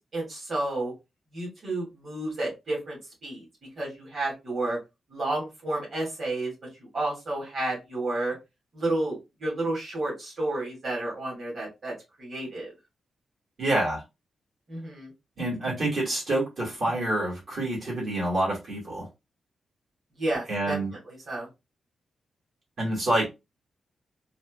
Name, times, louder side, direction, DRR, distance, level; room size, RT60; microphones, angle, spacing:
voice 1, 0.1-0.9 1.3-3.4 3.8-4.8 5.1-6.5 6.9-8.3 8.7-11.9 12.2-12.7 14.7-15.1 20.2-20.8 21.1-21.5, right 2 dB, 45° right, 2.2 m, -31 dB
voice 2, 13.6-14.0 15.4-19.1 20.5-20.9 22.8-23.3, right 1 dB, 65° right, 2.2 m, -27 dB
4.1 x 2.6 x 2.5 m
cardioid pair, 110°, 0 cm